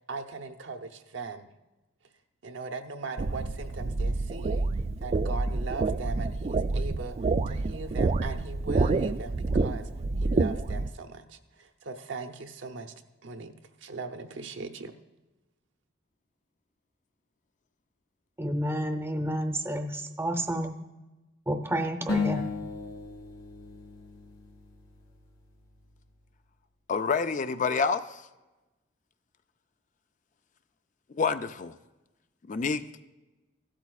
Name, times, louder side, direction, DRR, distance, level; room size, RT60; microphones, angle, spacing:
voice 1, 0.1-1.5 2.4-4.7 5.0-7.2 7.5-9.9 10.2-12.9 13.2-13.5 13.8-14.9, right 4 dB, 65° right, 7 dB, 0.8 m, -39 dB
sound 1, 3.2-10.9, right 3 dB, 35° right, 0.3 m, -28 dB
voice 2, 18.4-20.8 21.5-22.5, right 1 dB, 15° right, 7 dB, 0.7 m, -30 dB
sound 2, 22.1-25.3, left 4 dB, 85° left, 1.9 m, -34 dB
voice 3, 26.9-28.2 31.1-31.7 32.5-33.0, left 5 dB, 40° left, 10 dB, 0.4 m, -28 dB
15.5 x 12.5 x 2.4 m, 1.1 s
head